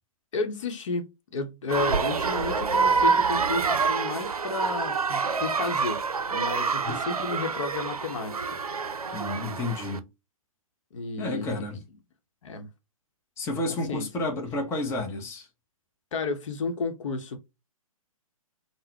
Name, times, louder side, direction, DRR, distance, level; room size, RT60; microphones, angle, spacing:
voice 1, 0.3-6.0 6.3-8.6 10.9-11.8 12.4-12.7 13.9-14.1 16.1-17.4, left 3 dB, 60° left, 0.8 m, -32 dB
sound 1, 1.7-10.0, right 5 dB, 85° right, 0.5 m, -27 dB
voice 2, 9.1-10.1 11.2-11.8 13.4-15.5, left 2 dB, 15° left, 0.7 m, -31 dB
3.8 x 2.1 x 2.8 m
figure-of-eight pair, 125°, 18 cm